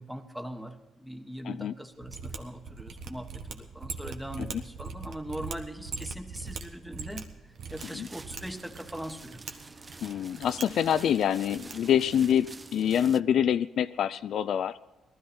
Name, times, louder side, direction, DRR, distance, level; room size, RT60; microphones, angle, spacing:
voice 1, 0.0-9.4, equal, 5° right, 7 dB, 1.4 m, -41 dB
Mechanisms, 2.0-12.5, right 5 dB, 65° right, 1.4 m, -42 dB
sound 1, 7.7-13.2, right 3 dB, 25° right, 0.5 m, -48 dB
voice 2, 10.0-14.8, left 9 dB, 70° left, 13 dB, 0.4 m, -26 dB
18.5 x 13.0 x 4.3 m, 1.1 s
cardioid pair, 90°, 0 cm